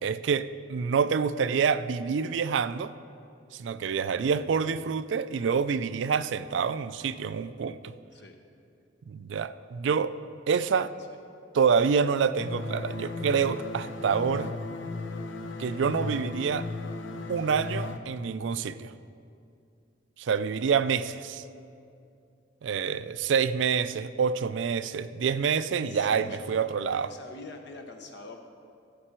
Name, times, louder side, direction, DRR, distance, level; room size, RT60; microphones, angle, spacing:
voice 1, 0.0-2.9 3.5-7.8 9.1-10.2 10.5-10.9 11.5-14.5 15.6-16.7 17.3-18.9 20.2-21.4 22.6-27.1, right 6 dB, 70° right, 14 dB, 0.4 m, -27 dB
sound 1, 12.4-18.0, left 3 dB, 80° left, 0.8 m, -36 dB
voice 2, 25.9-28.4, left 3 dB, 65° left, 4 dB, 1.1 m, -45 dB
15.5 x 7.7 x 4.4 m, 2.5 s
head